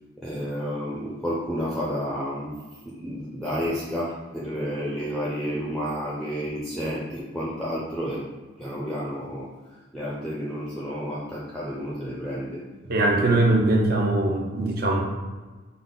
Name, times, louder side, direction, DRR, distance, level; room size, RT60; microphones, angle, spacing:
voice 1, 0.2-2.5 2.9-8.3 8.6-9.5 9.9-12.6 13.1-13.4, equal, ahead, -7 dB, 0.6 m, -30 dB
voice 2, 12.9-15.0, right 2 dB, 45° right, 0 dB, 0.7 m, -21 dB
5.4 x 2.2 x 3.9 m, 1.3 s
head